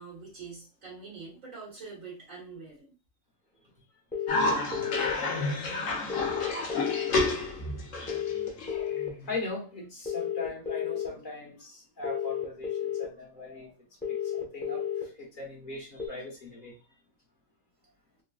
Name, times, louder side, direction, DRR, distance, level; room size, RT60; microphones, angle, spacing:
voice 1, 0.0-2.9, right 4 dB, 80° right, 1.7 m, -44 dB
sound 1, 4.1-5.1 6.1-7.1 8.1-9.1 10.1-11.1 12.0-13.0 14.0-15.0 16.0-16.1, left 9 dB, 10° left, 0.9 m, -32 dB
Cough, 4.3-9.3, left 2 dB, 70° left, 1.1 m, -30 dB
voice 2, 9.2-13.7 14.1-16.8, left 3 dB, 40° left, 1.3 m, -40 dB
3.8 x 2.2 x 2.3 m
omnidirectional pair, 1.4 m